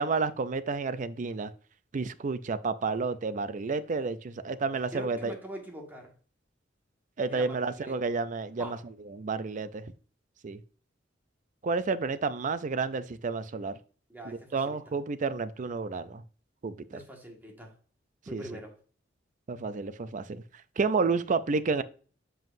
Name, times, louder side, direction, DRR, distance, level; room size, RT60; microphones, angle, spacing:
voice 1, 0.0-1.5 1.9-5.4 7.2-9.9 10.4-10.6 11.6-13.8 14.2-16.2 16.6-17.0 18.3-18.6 19.5-20.4 20.8-21.8, right 4 dB, 45° right, 0.4 m, -30 dB
voice 2, 4.9-6.1 7.3-8.1 8.6-8.8 14.1-14.4 14.6-14.7 16.9-17.7 18.3-18.7, right 1 dB, 10° right, 1.7 m, -43 dB
7.3 x 5.5 x 2.6 m
head